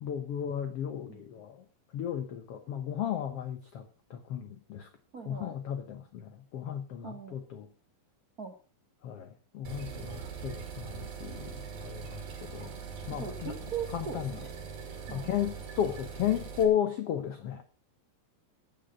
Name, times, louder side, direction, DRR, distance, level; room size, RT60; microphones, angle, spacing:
voice 1, 0.0-1.6 1.9-4.9 5.2-7.7 9.0-12.7 13.1-13.5 13.9-14.4 15.1-17.6, left 9 dB, 75° left, 9 dB, 1.4 m, -34 dB
voice 2, 5.1-5.5 7.0-7.3 8.4-8.5 12.6-12.7 13.1-14.5 15.1-15.4, right 6 dB, 50° right, 3 dB, 1.0 m, -40 dB
sound 1, 9.7-16.7, right 6 dB, 80° right, 5.3 m, -42 dB
15.0 x 9.2 x 5.5 m, 0.37 s
omnidirectional pair, 4.1 m